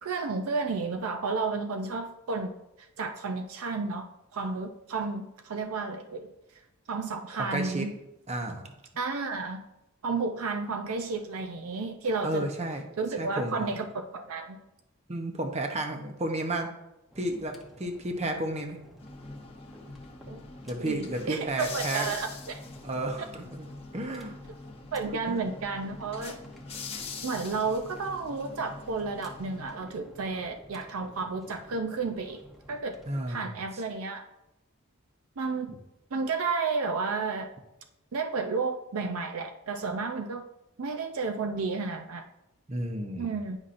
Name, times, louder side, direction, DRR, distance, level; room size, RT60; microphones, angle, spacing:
voice 1, 0.0-6.3 6.9-7.9 9.0-9.6 10.0-12.5 13.0-14.6 20.3-20.4 20.8-22.6 24.9-26.4 27.2-32.4 32.7-33.0 33.3-34.2 35.4-35.7 36.1-37.5 38.1-40.4 40.8-42.3 43.2-43.6, right 4 dB, 70° right, 6 dB, 0.5 m, -32 dB
voice 2, 7.4-7.9 8.3-8.7 12.2-12.8 13.2-13.8 15.1-16.7 17.1-18.8 20.6-22.1 22.8-23.7 23.9-24.3 25.1-25.4 33.1-33.8 42.7-43.4, right 1 dB, 30° right, 4 dB, 0.8 m, -32 dB
sound 1, 17.1-33.2, equal, ahead, 0.7 m, -53 dB
sound 2, 19.0-29.8, left 4 dB, 25° left, 0.8 m, -43 dB
9.7 x 5.5 x 2.5 m, 0.90 s
head